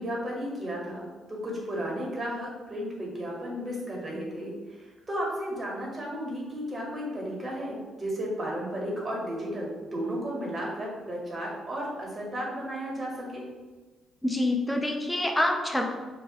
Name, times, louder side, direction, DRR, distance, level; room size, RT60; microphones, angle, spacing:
voice 1, 0.0-13.5, equal, 30° right, -3 dB, 0.8 m, -34 dB
voice 2, 14.2-15.9, left 1 dB, 10° left, 2 dB, 0.3 m, -26 dB
2.2 x 2.2 x 2.7 m, 1.3 s
cardioid pair, 90°, 0 cm